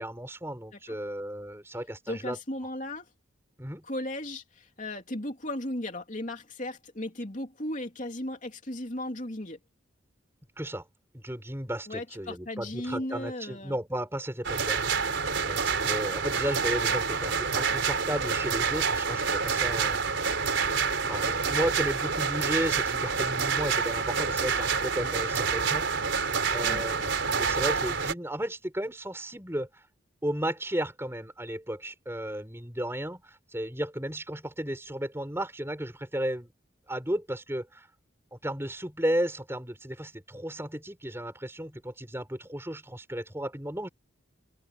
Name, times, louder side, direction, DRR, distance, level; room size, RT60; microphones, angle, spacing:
voice 1, 0.0-2.4 3.6-3.8 10.6-10.8 11.1-15.1 15.4-20.0 21.1-29.8 30.2-36.5 36.9-37.9 38.3-43.9, right 1 dB, 10° right, 4.7 m, -34 dB
voice 2, 2.1-3.1 3.8-9.6 11.9-13.8 21.3-21.6 26.6-26.8, left 1 dB, 40° left, 3.2 m, -36 dB
sound 1, 14.4-28.1, right 5 dB, 65° right, 4.4 m, -28 dB
open air
head